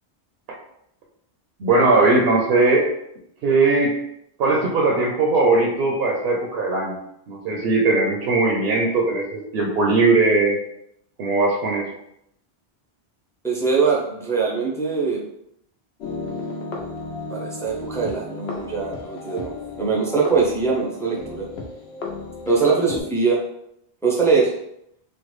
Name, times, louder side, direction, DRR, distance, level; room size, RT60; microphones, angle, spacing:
voice 1, 1.6-2.9 3.4-4.0 4.4-7.0 7.3-10.5 11.2-11.9, right 3 dB, 75° right, -1 dB, 0.8 m, -19 dB
voice 2, 13.4-15.2 17.3-21.5 22.5-23.4 24.0-24.5, right 4 dB, 5° left, -4 dB, 0.4 m, -22 dB
sound 1, 16.0-23.0, left 3 dB, 85° left, 0.9 m, -34 dB
3.1 x 2.2 x 3.1 m, 0.77 s
omnidirectional pair, 1.0 m